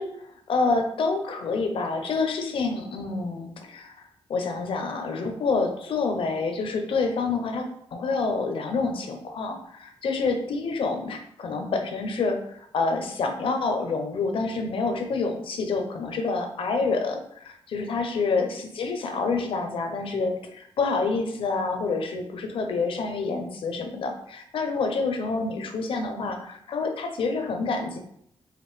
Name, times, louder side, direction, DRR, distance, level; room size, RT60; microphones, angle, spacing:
voice 1, 0.0-4.0 4.3-7.7 7.9-28.0, left 4 dB, 65° left, 4 dB, 0.7 m, -27 dB
4.9 x 2.6 x 3.2 m, 0.71 s
wide cardioid pair, 135°, 10 cm